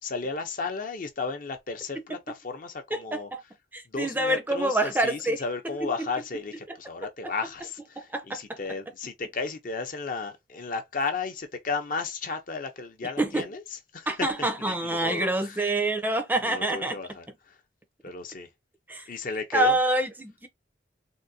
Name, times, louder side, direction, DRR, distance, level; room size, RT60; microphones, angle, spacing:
voice 1, 0.0-3.3 3.9-15.7 16.4-17.6 18.0-18.5 19.1-19.8, left 4 dB, 50° left, 0.6 m, -34 dB
voice 2, 2.9-3.4 3.7-5.4 5.8-5.9 8.1-8.6 13.2-13.5 14.1-17.0 18.9-19.0 19.5-20.5, right 1 dB, 10° right, 0.5 m, -26 dB
3.6 x 2.2 x 2.7 m
head